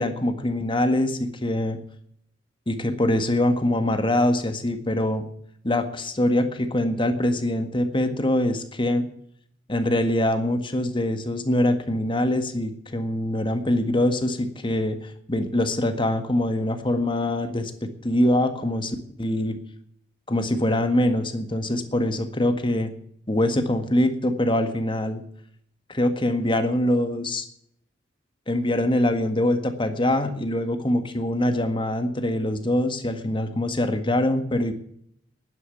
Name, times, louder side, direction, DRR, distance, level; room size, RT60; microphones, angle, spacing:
voice 1, 0.0-1.8 2.7-5.3 5.6-9.1 9.7-19.6 20.3-22.9 23.3-25.2 25.9-27.4 28.5-34.7, left 1 dB, 25° left, 8 dB, 1.7 m, -24 dB
11.5 x 10.5 x 8.4 m, 0.69 s
head